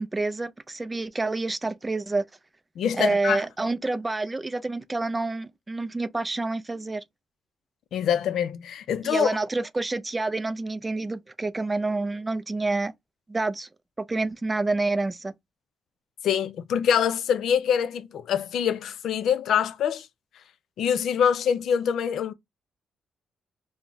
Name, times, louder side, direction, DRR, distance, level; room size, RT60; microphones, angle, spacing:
voice 1, 0.0-2.2 3.0-7.0 9.0-12.9 13.3-13.7 14.0-15.3, right 3 dB, 20° right, 0.3 m, -28 dB
voice 2, 2.8-3.4 7.9-9.4 16.2-20.1 20.8-22.3, left 8 dB, 75° left, 0.4 m, -25 dB
2.3 x 2.1 x 3.7 m
cardioid pair, 110°, 0 cm